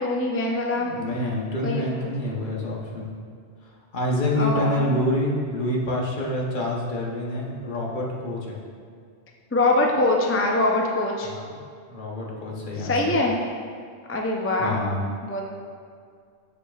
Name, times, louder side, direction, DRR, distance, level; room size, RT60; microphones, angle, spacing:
voice 1, 0.0-0.9 1.6-2.1 4.3-4.9 9.5-11.3 12.8-13.3 14.1-14.8 15.2-15.4, left 2 dB, 20° left, -1 dB, 0.3 m, -23 dB
voice 2, 0.9-3.1 3.9-8.6 11.3-11.5 11.9-13.2 14.6-15.0, left 1 dB, 50° left, -3 dB, 1.0 m, -27 dB
7.2 x 7.0 x 2.4 m, 2.2 s
omnidirectional pair, 1.1 m